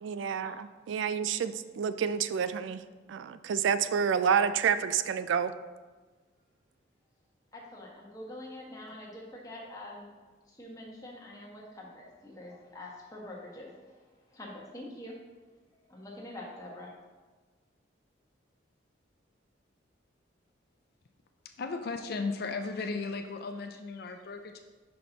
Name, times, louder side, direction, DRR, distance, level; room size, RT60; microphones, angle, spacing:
voice 1, 0.0-2.8 3.1-5.5, right 7 dB, 75° right, 12 dB, 0.3 m, -29 dB
voice 2, 7.5-10.1 10.5-15.1 15.7-16.9, left 1 dB, 20° left, -3 dB, 1.2 m, -45 dB
voice 3, 21.6-24.6, left 4 dB, 55° left, 6 dB, 0.4 m, -35 dB
5.8 x 5.2 x 3.9 m, 1.3 s
head